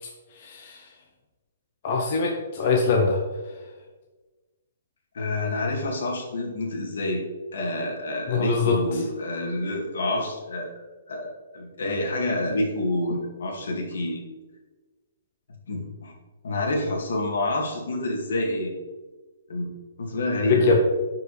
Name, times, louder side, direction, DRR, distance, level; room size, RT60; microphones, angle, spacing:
voice 1, 0.3-0.9 1.8-3.2 8.3-9.0 20.4-20.8, left 4 dB, 35° left, 0 dB, 0.8 m, -23 dB
voice 2, 5.1-7.2 7.5-10.7 11.1-14.2 15.7-16.1 16.4-18.7 19.5-19.7 20.0-20.7, left 2 dB, 75° left, -1 dB, 2.1 m, -28 dB
10.5 x 4.8 x 3.3 m, 1.3 s
hypercardioid pair, 175°, 0 cm